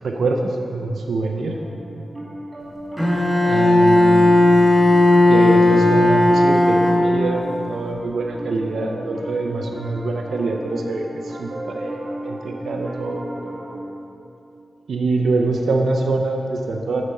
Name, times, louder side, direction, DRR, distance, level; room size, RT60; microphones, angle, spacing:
voice 1, 0.0-1.6 3.4-4.5 5.2-13.2 14.9-17.0, right 3 dB, 85° right, 2 dB, 0.6 m, -24 dB
Piano, 1.4-13.8, right 1 dB, 35° right, 1.2 m, -35 dB
Bowed string instrument, 3.0-7.5, left 2 dB, ahead, 1.3 m, -15 dB
8.2 x 5.1 x 5.7 m, 2.7 s
wide cardioid pair, 95°, 0 cm